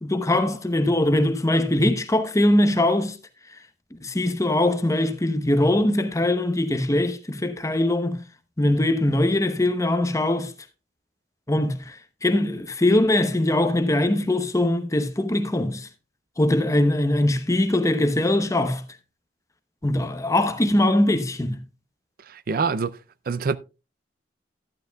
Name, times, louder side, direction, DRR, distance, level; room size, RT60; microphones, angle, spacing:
voice 1, 0.0-3.1 4.0-8.2 8.6-10.5 11.5-12.0 12.2-15.9 16.4-18.8 19.8-21.6, left 1 dB, 20° left, 0.8 m, -21 dB
voice 2, 22.3-23.0 23.3-23.6, right 5 dB, 55° right, 0.5 m, -25 dB
12.0 x 11.0 x 2.3 m
head